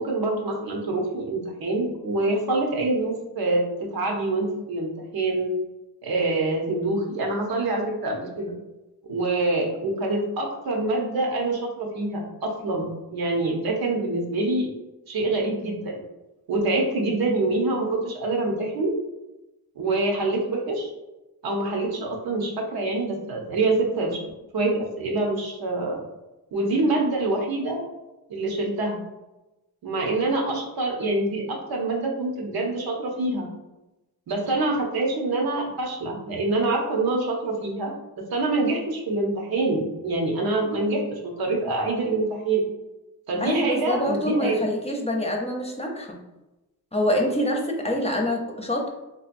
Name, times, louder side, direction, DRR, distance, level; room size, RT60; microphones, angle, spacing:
voice 1, 0.0-5.5 6.0-8.5 9.1-14.7 15.1-16.0 16.5-18.9 19.8-20.9 21.4-24.2 24.5-26.0 26.5-27.8 28.3-29.0 29.8-33.5 34.3-37.9 38.3-42.6 43.3-44.6, right 2 dB, 80° right, 0 dB, 0.9 m, -25 dB
voice 2, 43.4-46.2 46.9-48.9, equal, 15° left, 0 dB, 0.7 m, -25 dB
3.7 x 2.7 x 2.6 m, 1.0 s
cardioid pair, 90°, 36 cm